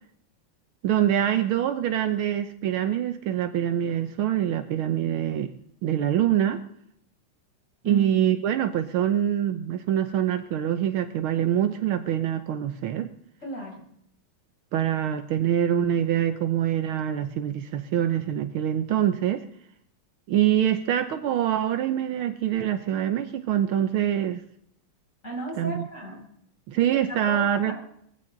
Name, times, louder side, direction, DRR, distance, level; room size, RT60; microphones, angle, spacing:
voice 1, 0.8-5.5 5.8-6.6 7.8-13.1 14.7-19.4 20.3-24.4 25.5-25.9 26.7-27.7, right 10 dB, 75° right, 8 dB, 1.7 m, -25 dB
voice 2, 13.4-13.8 25.2-26.2 27.1-27.7, right 2 dB, 35° left, -2 dB, 7.6 m, -34 dB
21.0 x 16.0 x 3.9 m, 0.71 s
omnidirectional pair, 2.4 m